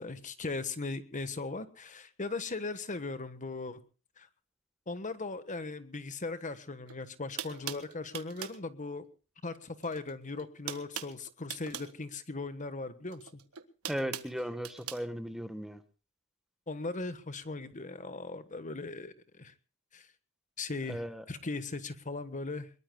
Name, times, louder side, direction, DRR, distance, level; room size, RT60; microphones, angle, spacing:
voice 1, 0.0-3.8 4.2-4.3 4.9-9.1 9.4-13.4 16.7-19.5 19.9-20.1 20.6-22.7, left 3 dB, 35° left, 11 dB, 1.4 m, -38 dB
sound 1, 6.9-7.0 7.4-8.6 9.8-10.1 10.4-11.9 13.1-15.0, right 10 dB, 75° right, 1.5 m, -41 dB
voice 2, 13.9-15.8 20.9-21.2, equal, ahead, 10 dB, 1.3 m, -36 dB
23.5 x 22.5 x 2.3 m, 0.36 s
head